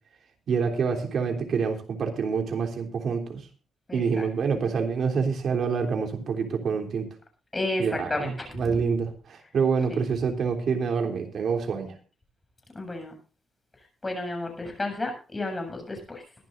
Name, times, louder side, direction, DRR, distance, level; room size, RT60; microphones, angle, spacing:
voice 1, 0.5-3.4 3.9-7.1 7.8-11.9, right 5 dB, 60° right, 4 dB, 3.3 m, -27 dB
voice 2, 3.9-4.3 7.5-8.8 9.9-10.1 12.7-13.1 14.0-16.2, left 2 dB, 20° left, 4 dB, 7.3 m, -32 dB
22.5 x 11.5 x 2.6 m, 0.37 s
cardioid pair, 115°, 0 cm